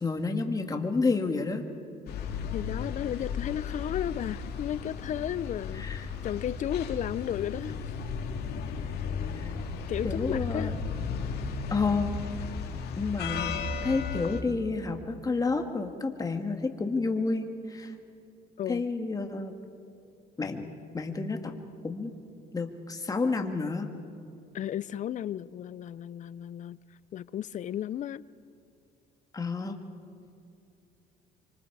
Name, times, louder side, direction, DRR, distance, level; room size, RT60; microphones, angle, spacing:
voice 1, 0.0-1.7 5.7-6.1 9.4-9.5 10.0-10.7 11.7-12.1 13.0-13.5 13.8-17.9 18.7-19.5 20.4-20.7 20.9-21.6 21.8-22.1 22.5-23.9 29.3-29.8, left 4 dB, 20° left, 1.9 m, -30 dB
sound 1, 2.1-14.4, left 5 dB, 70° left, 2.2 m, -35 dB
voice 2, 2.5-8.0 9.1-9.3 9.9-10.7 18.6-18.8 24.5-26.8 27.1-28.2, left 10 dB, 45° left, 0.5 m, -34 dB
25.5 x 25.0 x 4.8 m
cardioid pair, 110°, 17 cm